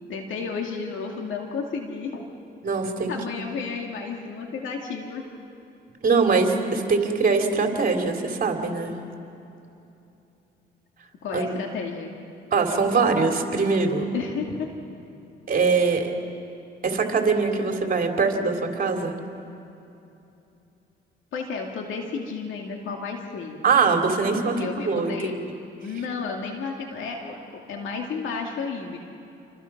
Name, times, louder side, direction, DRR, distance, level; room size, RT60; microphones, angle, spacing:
voice 1, 0.0-2.2 3.1-5.3 11.2-12.1 14.1-14.7 21.3-23.6 24.6-25.3 25.8-29.0, left 5 dB, 80° left, 1 dB, 2.5 m, -32 dB
voice 2, 2.6-3.1 6.0-8.9 11.3-11.5 12.5-14.1 15.5-16.1 16.8-19.2 23.6-24.6 24.8-25.3, right 4 dB, 45° right, 3 dB, 3.2 m, -22 dB
29.5 x 24.5 x 6.0 m, 2.8 s
cardioid pair, 90°, 20 cm